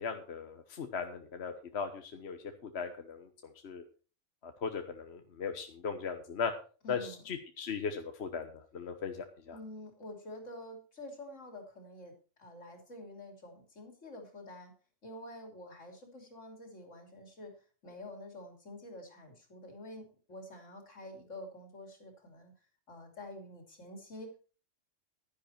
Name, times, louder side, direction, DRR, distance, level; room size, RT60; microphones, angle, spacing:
voice 1, 0.0-3.8 4.4-6.5 6.9-9.6, left 6 dB, 60° left, 6 dB, 1.3 m, -38 dB
voice 2, 6.8-7.2 9.5-14.7 15.0-17.6 17.8-22.5 22.9-24.4, left 1 dB, 85° left, 3 dB, 3.4 m, -48 dB
11.5 x 10.5 x 4.4 m, 0.37 s
omnidirectional pair, 1.2 m